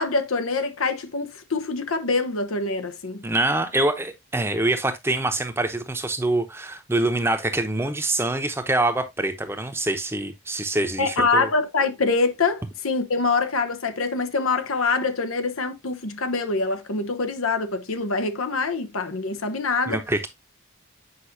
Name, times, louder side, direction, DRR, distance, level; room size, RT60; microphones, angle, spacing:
voice 1, 0.0-3.2 11.0-20.0, left 3 dB, 85° left, 1.0 m, -25 dB
voice 2, 3.2-11.5 19.9-20.3, right 2 dB, 10° right, 0.8 m, -25 dB
8.3 x 5.3 x 2.7 m
head